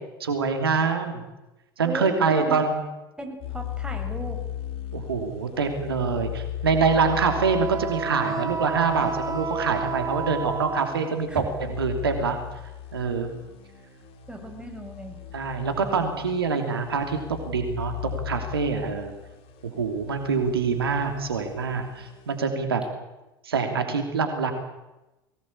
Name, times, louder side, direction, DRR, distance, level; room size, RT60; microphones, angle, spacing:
voice 1, 0.2-1.2 1.8-2.8 4.9-12.4 12.9-13.3 15.3-17.2 17.5-19.1 19.6-22.8 23.4-24.5, right 5 dB, 85° right, 6 dB, 3.0 m, -25 dB
voice 2, 1.8-2.6 3.2-4.4 11.3-11.4 13.0-13.1 14.3-15.2, right 2 dB, 5° right, 3 dB, 6.2 m, -35 dB
sound 1, 3.4-22.5, left 10 dB, 50° left, 3.3 m, -38 dB
Wind instrument woodwind instrument, 6.8-11.3, right 5 dB, 25° right, 1.9 m, -31 dB
23.0 x 18.5 x 8.6 m, 1.0 s
hypercardioid pair, 80°, 12 cm